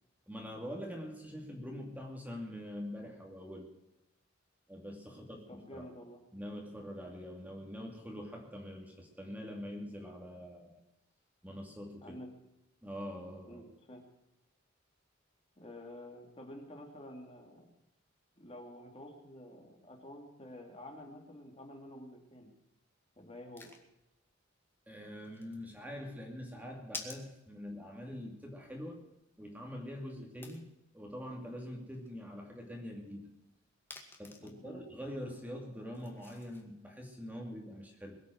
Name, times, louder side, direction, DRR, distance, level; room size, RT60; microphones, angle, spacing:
voice 1, 0.3-3.7 4.7-5.9 6.3-10.8 11.4-12.2 12.8-13.6 24.9-29.0 29.4-33.3 34.2-38.2, equal, 10° right, 1 dB, 2.5 m, -44 dB
voice 2, 5.1-6.2 12.0-12.3 13.5-14.0 15.6-17.7 18.4-22.5 23.2-23.7 34.4-34.8, left 1 dB, 30° left, 1 dB, 3.1 m, -50 dB
sound 1, 23.1-36.6, left 3 dB, 10° left, 2.1 m, -54 dB
22.0 x 8.4 x 6.3 m, 0.91 s
head